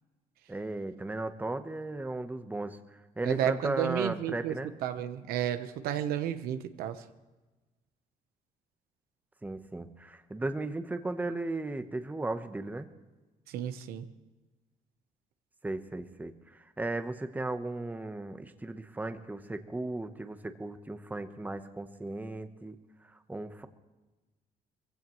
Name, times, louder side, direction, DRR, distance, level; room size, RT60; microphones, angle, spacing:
voice 1, 0.5-2.8 3.2-4.7 9.4-12.9 15.6-22.8 23.1-23.7, right 2 dB, 10° right, 9 dB, 1.0 m, -36 dB
voice 2, 3.2-4.6 4.8-7.0 13.5-14.1, right 10 dB, 85° right, 9 dB, 1.0 m, -32 dB
21.5 x 16.0 x 3.2 m, 1.2 s
cardioid pair, 105°, 15 cm